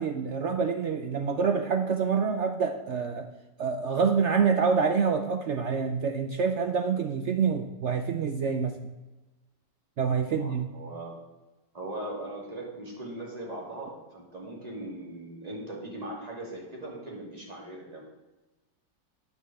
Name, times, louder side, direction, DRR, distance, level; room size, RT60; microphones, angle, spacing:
voice 1, 0.0-3.3 3.6-8.8 10.0-10.7, right 6 dB, 65° right, 6 dB, 0.7 m, -27 dB
voice 2, 10.3-11.1 11.7-18.0, right 1 dB, 20° right, -2 dB, 2.6 m, -39 dB
9.7 x 6.3 x 7.5 m, 1.1 s
omnidirectional pair, 1.9 m